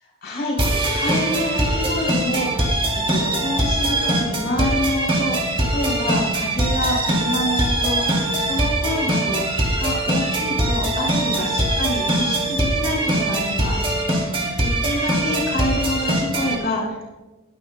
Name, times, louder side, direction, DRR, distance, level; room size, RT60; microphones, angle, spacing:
voice 1, 0.2-0.6 0.9-2.7 3.1-17.1, left 1 dB, 55° left, -3 dB, 4.3 m, -27 dB
sound 1, 0.6-16.5, right 1 dB, 30° right, 2.8 m, -22 dB
20.5 x 11.5 x 2.2 m, 1.2 s
head